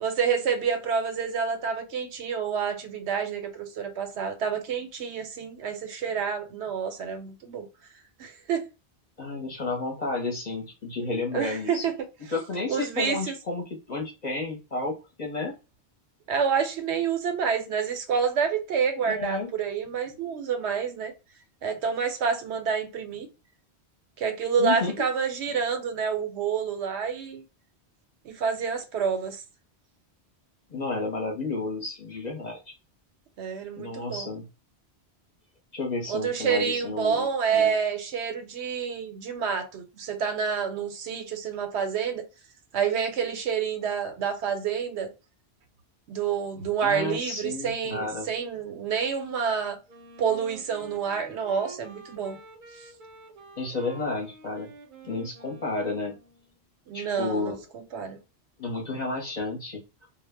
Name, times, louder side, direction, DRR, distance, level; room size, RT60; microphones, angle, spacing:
voice 1, 0.0-7.7 8.2-8.6 11.3-11.9 12.7-13.3 16.3-21.1 21.6-23.3 24.2-27.4 28.2-29.4 33.4-34.3 36.1-42.2 42.7-45.1 46.1-49.8 50.2-52.4 56.9-58.2, right 6 dB, 85° right, 0.9 m, -28 dB
voice 2, 9.2-11.9 12.3-15.5 19.0-19.5 24.6-25.1 30.7-32.7 33.8-34.5 35.7-37.7 46.8-48.3 53.6-54.7 55.0-56.1 56.9-57.6 58.6-60.1, left 3 dB, 45° left, 0.7 m, -32 dB
Wind instrument woodwind instrument, 49.9-56.5, right 3 dB, 55° right, 0.7 m, -48 dB
2.1 x 2.0 x 3.3 m
omnidirectional pair, 1.1 m